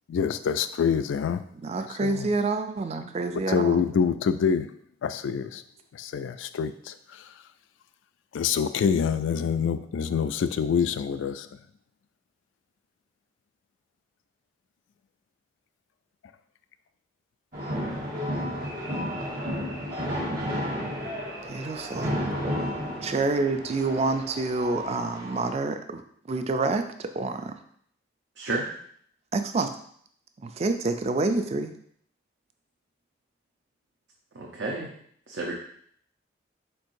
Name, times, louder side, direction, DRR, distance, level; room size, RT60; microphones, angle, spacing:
voice 1, 0.1-1.4 2.0-2.3 3.5-4.7 5.0-5.6 6.0-6.9 8.3-11.5, left 7 dB, 85° left, 12 dB, 0.3 m, -26 dB
voice 2, 1.6-3.9 21.5-22.2 23.0-26.0 26.3-27.6 29.3-29.7 30.4-31.7, right 3 dB, 35° right, 8 dB, 0.3 m, -28 dB
sound 1, 17.5-25.6, equal, 50° right, 1.1 m, -32 dB
voice 3, 28.4-28.7 34.3-34.9 35.3-35.5, right 2 dB, 70° right, -2 dB, 0.6 m, -31 dB
4.5 x 4.5 x 2.6 m, 0.63 s
head